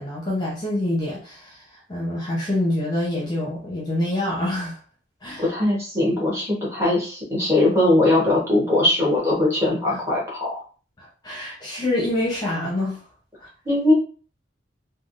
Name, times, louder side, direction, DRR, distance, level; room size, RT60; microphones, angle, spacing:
voice 1, 0.0-4.8 5.2-5.5 9.9-10.0 11.0-13.0 13.4-13.5, left 1 dB, 20° left, -5 dB, 0.8 m, -26 dB
voice 2, 5.4-10.6 13.6-13.9, left 1 dB, 15° right, -5 dB, 1.2 m, -20 dB
3.4 x 2.3 x 2.5 m, 0.39 s
head